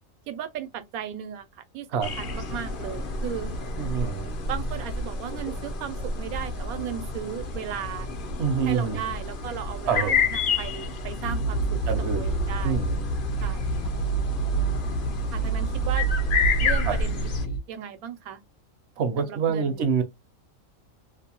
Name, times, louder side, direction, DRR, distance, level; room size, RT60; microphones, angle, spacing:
voice 1, 0.3-3.5 4.5-8.1 8.7-12.8 13.4-13.9 15.3-16.1 16.6-17.3 17.7-18.4 19.2-19.8, right 9 dB, 85° right, 1.1 m, -36 dB
sound 1, 2.0-17.5, left 4 dB, 55° left, 0.6 m, -30 dB
voice 2, 3.8-4.3 8.4-9.0 9.9-10.2 11.9-12.3 12.6-13.2 16.8-16.9 19.0-20.0, right 6 dB, 60° right, 0.7 m, -26 dB
sound 2, 11.2-17.6, right 4 dB, 70° left, 0.9 m, -27 dB
2.6 x 2.1 x 2.8 m
omnidirectional pair, 1.5 m